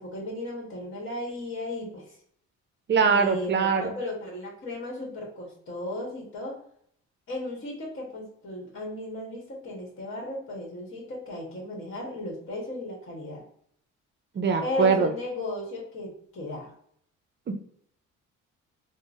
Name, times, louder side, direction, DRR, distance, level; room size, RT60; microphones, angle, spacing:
voice 1, 0.0-2.2 3.0-6.6 7.3-13.4 14.6-16.7, left 2 dB, 45° left, -1 dB, 1.2 m, -35 dB
voice 2, 2.9-4.0 14.3-15.1 17.5-17.6, right 5 dB, 40° right, 6 dB, 0.5 m, -22 dB
3.7 x 2.1 x 2.4 m, 0.66 s
cardioid pair, 90°, 30 cm